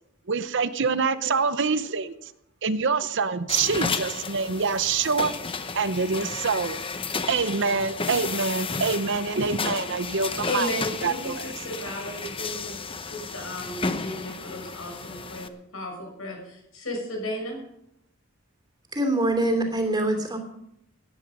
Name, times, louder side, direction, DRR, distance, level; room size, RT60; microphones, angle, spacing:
voice 1, 0.3-2.1 2.6-5.3 5.7-6.8 7.3-10.7 11.0-11.5, right 5 dB, 60° right, 13 dB, 0.8 m, -25 dB
sound 1, 3.5-15.5, left 4 dB, 25° left, 0.8 m, -33 dB
voice 2, 10.4-12.8 13.1-17.6, left 1 dB, 85° left, 2 dB, 6.4 m, -34 dB
voice 3, 18.9-20.4, right 1 dB, 20° right, 4 dB, 3.0 m, -24 dB
18.0 x 10.5 x 5.4 m, 0.78 s
head